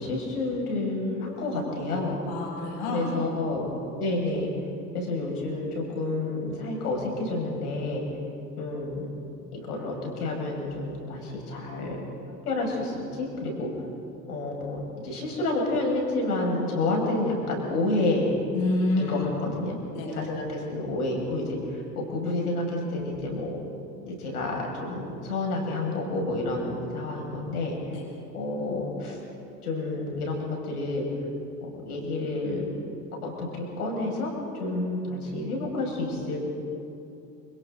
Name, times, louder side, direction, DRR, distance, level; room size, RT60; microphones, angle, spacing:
voice 1, 0.0-2.2 2.9-3.7 3.9-4.5 4.9-8.0 8.6-9.1 9.5-12.0 12.3-13.7 14.3-18.3 19.0-19.8 20.0-23.6 24.0-27.8 28.3-29.2 29.6-31.0 31.6-32.6 33.2-36.4, left 2 dB, 65° left, 0 dB, 6.5 m, -29 dB
voice 2, 2.3-3.1 18.5-19.2 19.9-20.1 27.9-28.0, left 2 dB, 45° left, -2 dB, 6.6 m, -28 dB
29.5 x 27.5 x 3.9 m, 2.7 s
figure-of-eight pair, 80°, 48 cm